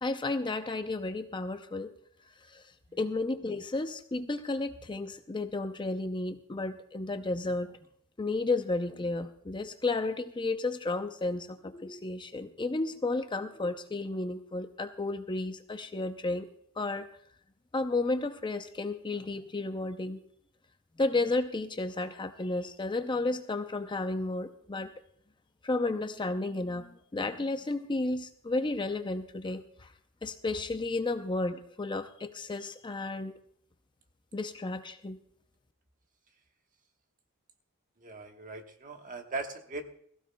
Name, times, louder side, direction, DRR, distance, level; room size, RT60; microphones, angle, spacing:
voice 1, 0.0-1.9 2.4-2.6 2.9-7.7 8.2-16.5 16.8-17.1 17.7-20.2 21.0-24.9 25.6-29.9 30.2-33.4 34.3-35.2, left 2 dB, 20° left, 8 dB, 0.5 m, -32 dB
voice 2, 38.0-39.9, right 3 dB, 40° right, 5 dB, 1.2 m, -39 dB
21.0 x 15.5 x 2.2 m, 0.65 s
head